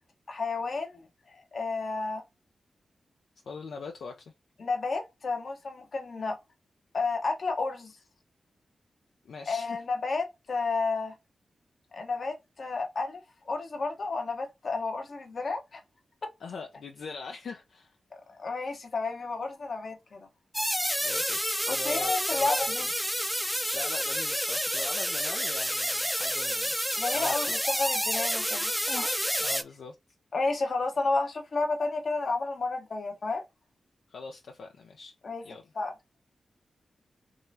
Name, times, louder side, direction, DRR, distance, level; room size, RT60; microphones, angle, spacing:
voice 1, 0.3-2.2 4.6-6.4 6.9-7.9 9.5-11.1 11.9-13.2 13.5-15.8 18.1-20.3 21.7-22.9 27.0-29.1 30.3-33.4 35.2-35.4 35.7-35.9, left 3 dB, 65° left, 1.0 m, -31 dB
voice 2, 3.5-4.1 9.2-9.8 16.4-18.0 21.0-22.9 23.7-26.7 27.1-27.5 29.4-29.9 34.1-35.1 35.4-35.6, left 4 dB, 80° left, 0.5 m, -42 dB
sound 1, 20.5-29.6, equal, ahead, 0.5 m, -29 dB
3.7 x 3.1 x 2.7 m
cardioid pair, 45°, 0 cm